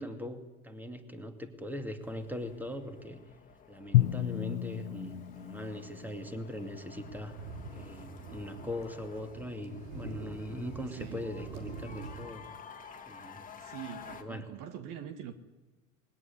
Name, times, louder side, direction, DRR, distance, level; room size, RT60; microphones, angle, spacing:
voice 1, 0.0-3.2 3.7-7.3 7.7-12.4 13.1-13.4 14.2-14.5, left 1 dB, 5° right, 7 dB, 2.6 m, -40 dB
sound 1, 2.0-14.2, left 6 dB, 20° left, 2.2 m, -52 dB
Drum, 3.9-6.9, left 15 dB, 75° left, 0.6 m, -31 dB
sound 2, 7.0-12.3, right 3 dB, 80° right, 2.9 m, -45 dB
voice 2, 13.6-15.3, right 9 dB, 50° right, 10 dB, 1.7 m, -43 dB
21.0 x 17.0 x 9.7 m, 1.1 s
hypercardioid pair, 80°, 41 cm